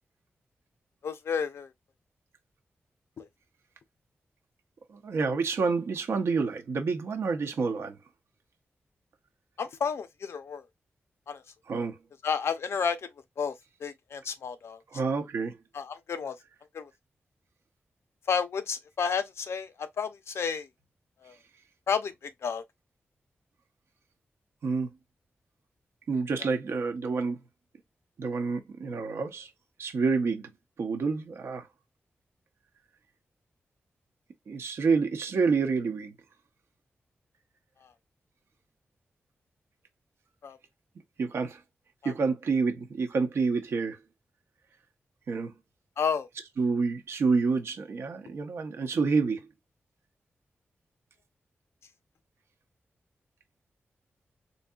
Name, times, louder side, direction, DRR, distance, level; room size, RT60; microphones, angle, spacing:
voice 1, 1.0-1.7 3.2-3.3 9.6-10.6 11.3-11.4 12.2-13.0 13.4-13.5 13.8-14.8 15.7-16.3 16.7-16.9 18.3-19.7 20.0-20.7 21.2-21.3 21.9-22.1 22.4-22.6 40.4-40.6 42.0-42.1 46.0-46.3, left 6 dB, 80° left, 0.5 m, -31 dB
voice 2, 4.9-8.0 11.7-12.0 14.9-15.6 24.6-24.9 26.1-27.4 28.2-29.5 29.8-30.5 30.8-31.7 34.5-36.2 41.2-41.6 42.0-44.0 45.3-45.5 46.6-49.4, right 4 dB, 75° right, 0.8 m, -28 dB
4.0 x 2.7 x 2.3 m
wide cardioid pair, 115°, 4 cm